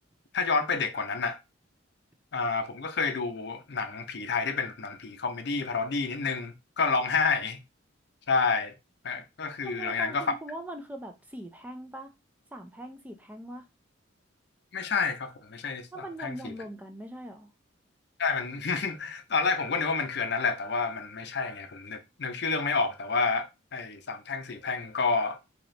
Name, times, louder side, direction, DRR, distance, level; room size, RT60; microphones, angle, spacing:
voice 1, 0.3-1.4 2.3-7.6 8.3-8.8 9.0-10.3 14.7-16.5 18.2-25.4, left 4 dB, 55° left, 0.6 m, -29 dB
voice 2, 9.6-12.1 12.5-13.7 15.9-17.5, right 1 dB, 10° right, 0.4 m, -41 dB
4.0 x 2.9 x 3.2 m
head